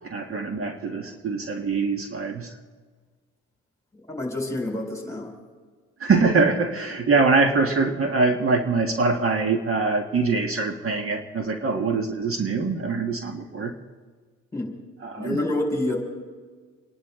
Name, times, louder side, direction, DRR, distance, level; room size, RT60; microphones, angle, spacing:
voice 1, 0.0-2.5 6.0-13.7 15.0-15.4, right 4 dB, 45° right, 4 dB, 1.6 m, -23 dB
voice 2, 4.1-5.3 14.5-14.7 15.2-16.0, left 1 dB, 10° left, 1 dB, 4.6 m, -27 dB
29.5 x 11.0 x 3.7 m, 1.5 s
cardioid pair, 90°, 30 cm